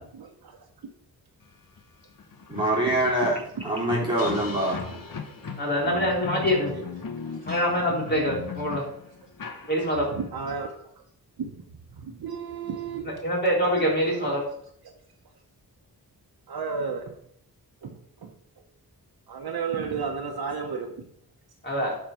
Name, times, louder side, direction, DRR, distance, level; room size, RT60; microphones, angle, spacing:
voice 1, 0.2-0.6 0.8-0.9 3.2-3.3 4.0-4.1 4.8-5.0 5.3-5.6 7.2-7.4 10.2-10.7 11.4-11.5 11.9-13.1 14.2-14.3 16.5-17.1 17.8-18.3 19.3-21.1, right 5 dB, 75° right, 1.0 m, -33 dB
sound 1, 1.8-1.9 2.2-10.2, left 5 dB, 60° left, 1.2 m, -37 dB
voice 2, 2.5-3.4 3.6-4.8, right 1 dB, 15° right, 3.2 m, -24 dB
voice 3, 5.6-6.7 7.4-8.9 9.7-10.1 13.0-14.4 21.6-22.0, equal, 30° left, 3.9 m, -25 dB
11.5 x 4.3 x 5.7 m
wide cardioid pair, 120°, 37 cm